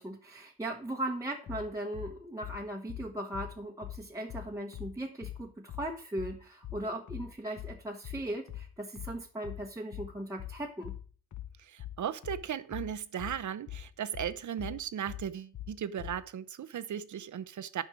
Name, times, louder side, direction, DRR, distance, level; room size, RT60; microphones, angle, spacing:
voice 1, 0.0-10.9, right 1 dB, 10° right, 1.1 m, -38 dB
sound 1, 1.5-16.2, left 12 dB, 65° left, 1.1 m, -43 dB
voice 2, 11.6-17.8, right 9 dB, 65° right, 0.8 m, -37 dB
9.7 x 5.5 x 6.2 m
cardioid pair, 80°, 32 cm